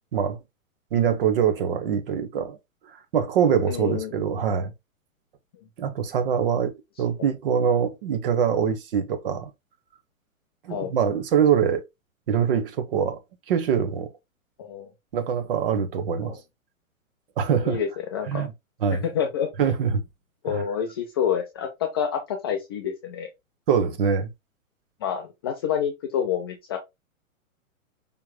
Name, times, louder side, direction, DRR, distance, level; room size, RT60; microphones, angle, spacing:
voice 1, 0.9-2.6 3.1-4.7 5.8-9.5 10.6-11.8 12.3-13.2 13.5-14.1 15.1-16.4 17.4-17.8 18.3-18.5 18.8-19.0 19.6-20.0 20.5-20.6 23.7-24.3, right 7 dB, 40° right, 1.2 m, -23 dB
voice 2, 3.7-4.1 10.7-10.9 14.6-14.9 16.2-16.4 17.7-18.5 19.1-19.5 20.4-23.3 25.0-26.8, left 8 dB, 20° left, 0.5 m, -28 dB
5.4 x 4.4 x 2.2 m
figure-of-eight pair, 115°, 42 cm